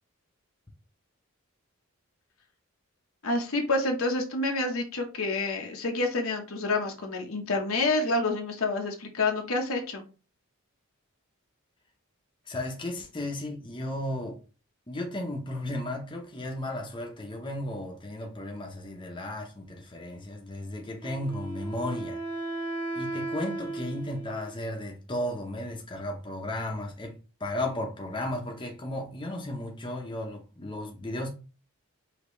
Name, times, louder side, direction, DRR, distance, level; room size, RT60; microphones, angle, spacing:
voice 1, 3.2-10.0, left 2 dB, 70° left, 1.0 m, -28 dB
voice 2, 12.5-14.4 14.9-22.2 22.9-31.3, left 1 dB, 20° left, 0.8 m, -34 dB
Wind instrument woodwind instrument, 21.0-24.6, right 2 dB, 35° right, 1.5 m, -35 dB
5.1 x 2.9 x 3.2 m
head